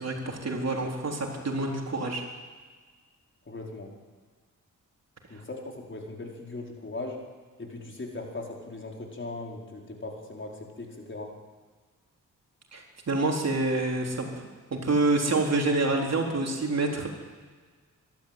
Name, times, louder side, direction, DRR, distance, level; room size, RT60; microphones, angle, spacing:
voice 1, 0.0-2.2 12.7-14.3 14.7-17.1, right 2 dB, 50° right, 1 dB, 4.1 m, -27 dB
voice 2, 3.5-3.9 5.3-7.2 7.6-11.3, left 2 dB, 35° left, 0 dB, 4.7 m, -39 dB
25.0 x 12.0 x 9.1 m, 1.5 s
cardioid pair, 60°, 32 cm